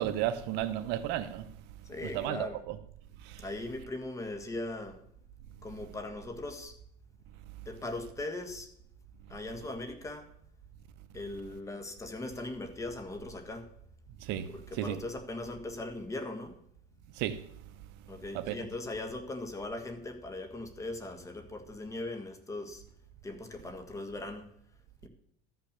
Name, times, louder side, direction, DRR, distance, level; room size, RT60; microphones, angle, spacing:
voice 1, 0.0-1.5 2.0-2.8 3.2-3.4 14.2-15.0 17.1-17.5 18.3-18.6, right 12 dB, 55° right, 0.8 m, -33 dB
voice 2, 1.8-2.6 3.4-5.0 5.6-6.8 7.6-8.7 9.3-10.3 11.1-13.7 14.5-16.6 18.1-22.8 23.2-24.5 25.0-25.1, left 2 dB, 15° left, 1.5 m, -39 dB
13.0 x 6.0 x 6.7 m
supercardioid pair, 130°, 20 cm